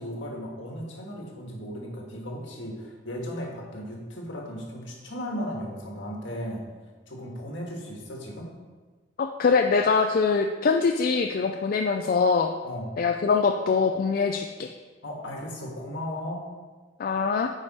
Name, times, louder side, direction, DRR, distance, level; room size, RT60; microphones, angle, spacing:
voice 1, 0.0-6.6 7.1-8.5 12.6-12.9 15.0-16.4, equal, 80° left, -1 dB, 1.7 m, -36 dB
voice 2, 9.2-12.5 13.0-14.7 17.0-17.5, left 5 dB, 50° left, 5 dB, 0.4 m, -23 dB
9.6 x 4.9 x 4.2 m, 1.4 s
head